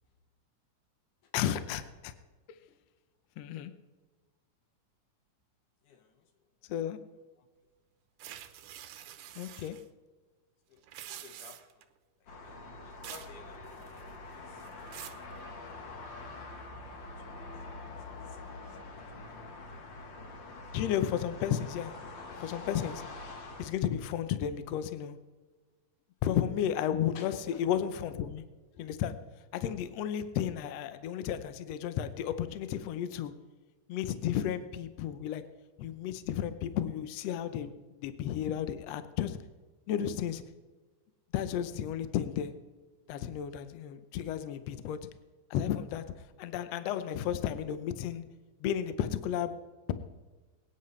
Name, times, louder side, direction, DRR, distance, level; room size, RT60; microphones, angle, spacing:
voice 1, 1.3-2.1 3.4-3.7 6.7-7.0 9.3-9.8 20.7-21.9 22.4-23.0 23.6-25.2 26.2-27.3 27.6-28.4 28.8-29.1 29.5-33.3 33.9-35.4 35.8-37.7 38.0-39.4 39.9-40.4 41.3-42.5 43.1-45.1 45.5-46.0 46.4-48.2 48.6-49.5, left 10 dB, 70° left, 11 dB, 1.7 m, -33 dB
voice 2, 5.8-6.3 7.4-7.5 10.7-11.9 12.2-14.7 17.2-17.4 18.2-19.6 27.1-27.6 28.7-28.8, left 6 dB, 90° left, 5 dB, 2.9 m, -54 dB
sound 1, 8.2-9.8 10.8-11.8 13.0-13.3 13.7-14.2 14.6-15.2, right 11 dB, 85° right, 2.3 m, -47 dB
sound 2, 12.3-23.7, left 3 dB, 50° left, 1.6 m, -45 dB
23.0 x 10.0 x 3.3 m, 1.3 s
omnidirectional pair, 3.6 m